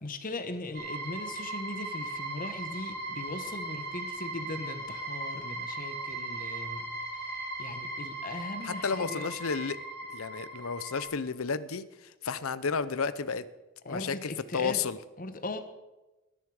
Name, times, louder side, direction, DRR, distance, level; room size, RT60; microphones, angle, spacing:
voice 1, 0.0-6.9 7.2-9.2 13.8-14.8 15.2-15.6, left 2 dB, 40° left, 8 dB, 1.1 m, -39 dB
sound 1, 0.7-11.1, right 2 dB, 45° right, 6.2 m, -38 dB
voice 2, 8.6-9.8 10.1-13.4 13.9-15.0, left 5 dB, 80° left, 15 dB, 0.7 m, -32 dB
19.0 x 10.5 x 4.9 m, 1.1 s
head